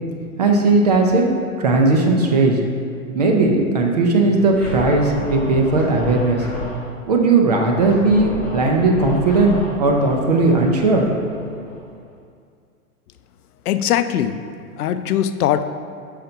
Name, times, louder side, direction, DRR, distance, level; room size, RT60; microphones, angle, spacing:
voice 1, 0.4-2.6 3.1-6.4 7.1-11.0, right 3 dB, 30° right, 1 dB, 0.4 m, -17 dB
Scratching (performance technique), 4.5-6.8 7.8-12.1, equal, 5° left, 1.3 m, -32 dB
voice 2, 13.7-14.5 14.8-15.6, left 10 dB, 80° left, 11 dB, 0.5 m, -20 dB
5.7 x 5.5 x 3.8 m, 2.3 s
hypercardioid pair, 150°, 45 cm